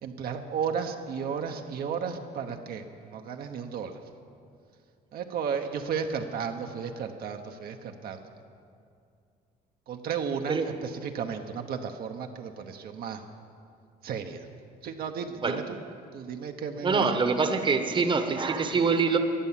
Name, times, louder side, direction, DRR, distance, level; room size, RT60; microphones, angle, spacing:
voice 1, 0.0-4.0 5.1-8.2 9.9-13.2 14.0-14.4 14.8-15.8 16.1-17.1, right 6 dB, 65° right, 5 dB, 1.0 m, -34 dB
voice 2, 16.8-19.2, right 4 dB, 30° right, 7 dB, 1.1 m, -24 dB
14.0 x 9.7 x 7.4 m, 2.3 s
cardioid pair, 110°, 17 cm